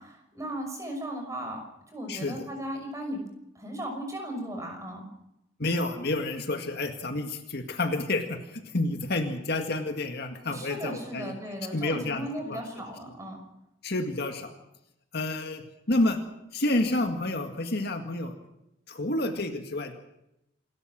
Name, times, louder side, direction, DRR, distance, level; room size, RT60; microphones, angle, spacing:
voice 1, 0.0-1.6 1.9-3.2 3.5-5.1 10.5-13.4, right 1 dB, 15° right, 3 dB, 6.0 m, -36 dB
voice 2, 2.1-2.5 5.6-11.3 11.7-12.6 13.8-14.5 15.1-16.2 16.5-18.4 18.9-19.9, left 2 dB, 55° left, 5 dB, 1.9 m, -29 dB
27.5 x 13.0 x 7.5 m, 0.85 s
head